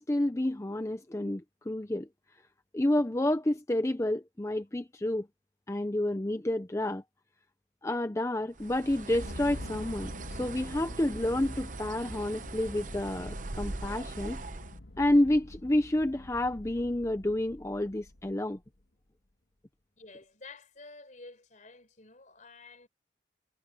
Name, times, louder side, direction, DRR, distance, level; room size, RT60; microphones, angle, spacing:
voice 1, 0.0-2.1 2.7-5.3 5.7-7.0 7.8-14.4 15.0-18.6, left 1 dB, 15° left, 0.6 m, -29 dB
Bird, 8.5-14.8, right 3 dB, 45° right, 0.9 m, -42 dB
sound 1, 9.0-18.6, left 1 dB, 90° left, 1.5 m, -45 dB
voice 2, 20.0-22.9, left 3 dB, 45° left, 4.4 m, -50 dB
head